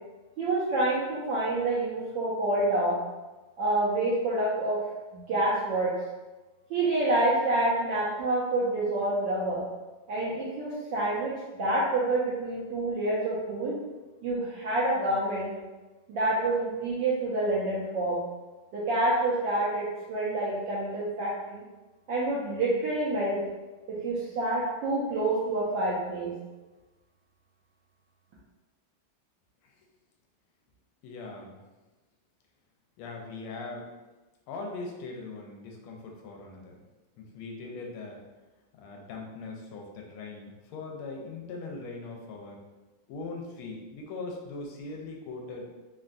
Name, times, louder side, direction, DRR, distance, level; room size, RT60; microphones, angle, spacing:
voice 1, 0.4-3.0 3.6-4.8 5.1-6.0 6.7-9.6 10.1-13.8 14.2-15.5 16.1-18.2 18.7-21.6 22.1-23.4 23.9-26.3, right 2 dB, 75° right, -7 dB, 1.1 m, -27 dB
voice 2, 31.0-31.6 33.0-33.9 34.5-36.8 37.2-38.2 38.7-42.6 43.1-45.7, left 3 dB, 80° left, 0 dB, 1.4 m, -40 dB
3.6 x 2.2 x 2.5 m, 1.2 s
omnidirectional pair, 2.4 m